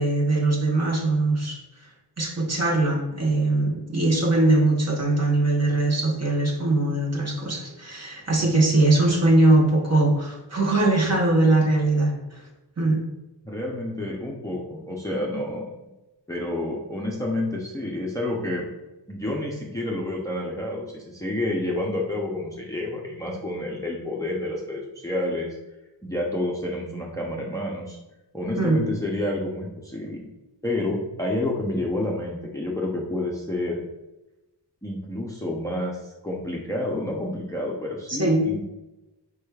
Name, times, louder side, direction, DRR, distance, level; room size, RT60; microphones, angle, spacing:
voice 1, 0.0-1.6 2.2-12.2 12.8-13.0 28.6-28.8 38.1-38.4, right 2 dB, 35° right, -1 dB, 1.0 m, -21 dB
voice 2, 13.4-15.7 16.3-18.7 19.1-25.6 26.0-28.0 28.3-30.2 30.6-33.8 34.8-38.6, left 1 dB, 10° left, -2 dB, 0.6 m, -29 dB
4.9 x 4.6 x 2.3 m, 0.99 s
wide cardioid pair, 95°, 45 cm